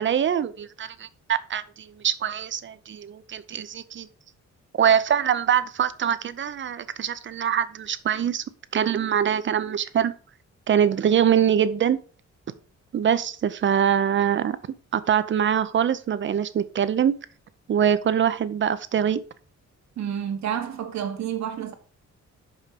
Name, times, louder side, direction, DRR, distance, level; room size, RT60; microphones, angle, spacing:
voice 1, 0.0-4.1 4.8-8.4 8.7-10.1 10.7-12.0 12.9-14.6 14.9-17.1 17.7-19.2, right 9 dB, 40° right, 0.6 m, -23 dB
voice 2, 20.0-21.7, right 9 dB, 70° right, 1.5 m, -29 dB
6.2 x 5.6 x 6.6 m
wide cardioid pair, 175°, 29 cm